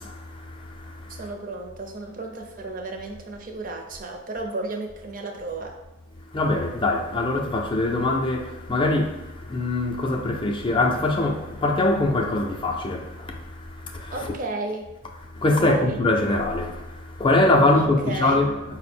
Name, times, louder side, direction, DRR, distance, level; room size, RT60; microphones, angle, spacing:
voice 1, 0.0-1.2 6.3-14.3 15.3-18.5, left 2 dB, 25° left, 0.4 m, -23 dB
voice 2, 1.1-5.8 14.1-14.9 15.6-16.0 17.7-18.4, right 3 dB, 40° right, 0.6 m, -33 dB
5.0 x 2.1 x 4.2 m
head